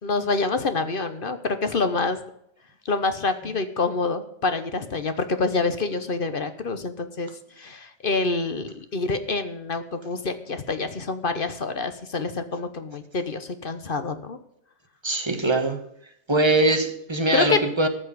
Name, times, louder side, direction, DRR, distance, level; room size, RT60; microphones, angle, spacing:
voice 1, 0.0-2.2 2.8-7.3 7.6-14.4 17.3-17.6, left 3 dB, 45° left, 10 dB, 1.1 m, -26 dB
voice 2, 15.0-15.8 16.3-17.9, right 2 dB, 20° right, 6 dB, 1.5 m, -22 dB
14.0 x 6.1 x 9.6 m, 0.76 s
omnidirectional pair, 1.4 m